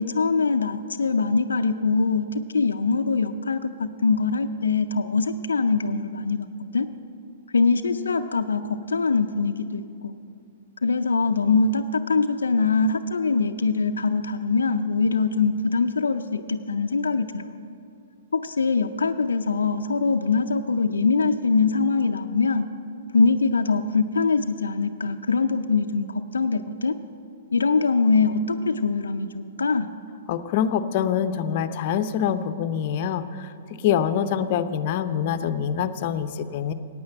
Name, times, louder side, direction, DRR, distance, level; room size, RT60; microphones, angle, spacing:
voice 1, 0.0-6.5 6.7-6.9 7.5-10.1 10.8-17.5 18.3-22.7 23.1-27.0 27.5-29.9, left 4 dB, 90° left, 8 dB, 0.4 m, -23 dB
voice 2, 30.3-33.5 33.8-36.7, left 8 dB, 50° left, 10 dB, 0.6 m, -25 dB
9.6 x 9.0 x 7.8 m, 2.5 s
hypercardioid pair, 125°, 0 cm